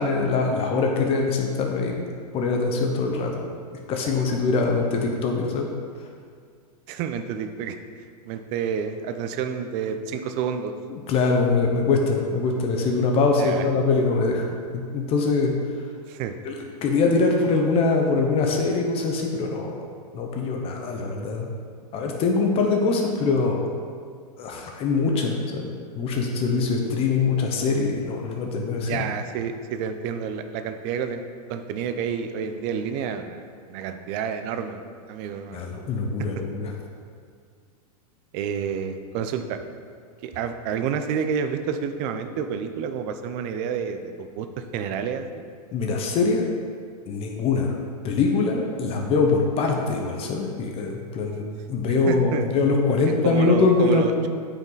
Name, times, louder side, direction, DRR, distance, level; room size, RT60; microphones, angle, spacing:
voice 1, 0.0-2.0 2.3-3.5 3.9-5.7 10.9-14.5 14.9-15.5 16.4-19.7 20.1-21.5 21.9-23.6 24.4-29.0 35.5-36.7 45.7-46.4 47.1-47.7 48.0-54.1, left 4 dB, 30° left, 1 dB, 0.8 m, -23 dB
voice 2, 6.9-7.8 8.3-10.7 13.4-13.7 16.1-16.4 28.8-31.2 31.5-33.4 33.7-35.6 38.3-39.6 40.2-44.5 44.7-45.4 52.1-52.4 53.1-54.3, right 7 dB, 40° right, 8 dB, 0.6 m, -29 dB
8.8 x 5.0 x 3.9 m, 2.1 s
hypercardioid pair, 135°, 20 cm